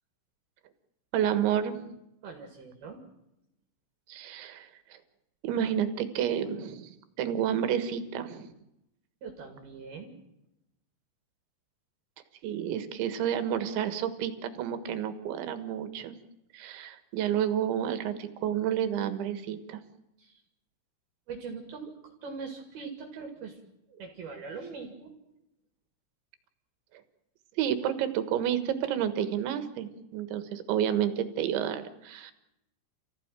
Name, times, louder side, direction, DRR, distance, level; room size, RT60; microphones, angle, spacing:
voice 1, 1.1-1.9 4.1-5.0 5.4-8.5 12.4-16.2 16.5-19.8 27.6-32.3, right 9 dB, 75° right, 10 dB, 3.7 m, -30 dB
voice 2, 2.2-3.0 9.2-10.1 20.2-20.4 21.3-23.6 23.9-25.1, right 5 dB, 55° right, 3 dB, 4.0 m, -42 dB
29.0 x 15.5 x 9.0 m, 0.88 s
omnidirectional pair, 5.6 m